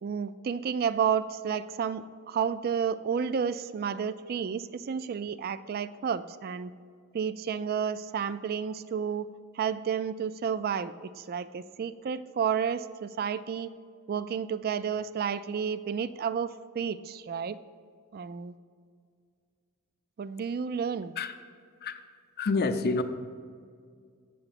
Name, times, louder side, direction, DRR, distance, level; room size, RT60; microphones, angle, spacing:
voice 1, 0.0-6.7 7.1-9.3 9.5-13.7 14.1-17.6 18.1-18.5 20.2-21.1, right 7 dB, 45° right, 15 dB, 0.3 m, -31 dB
voice 2, 22.4-23.0, left 3 dB, 45° left, 9 dB, 0.5 m, -28 dB
7.7 x 7.0 x 5.8 m, 2.1 s
head